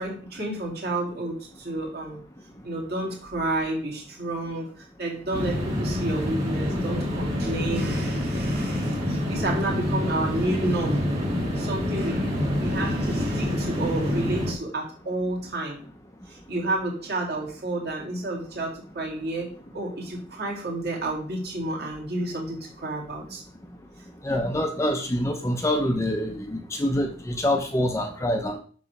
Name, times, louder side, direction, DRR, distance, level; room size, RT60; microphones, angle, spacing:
voice 1, 0.0-2.2 2.6-11.0 11.6-15.8 16.3-23.4, right 2 dB, 55° right, -2 dB, 2.3 m, -30 dB
sound 1, 5.3-14.5, left 1 dB, 30° right, 2.2 m, -27 dB
voice 2, 24.2-28.6, left 1 dB, 15° left, 4 dB, 0.6 m, -25 dB
6.9 x 3.1 x 5.9 m, 0.43 s
head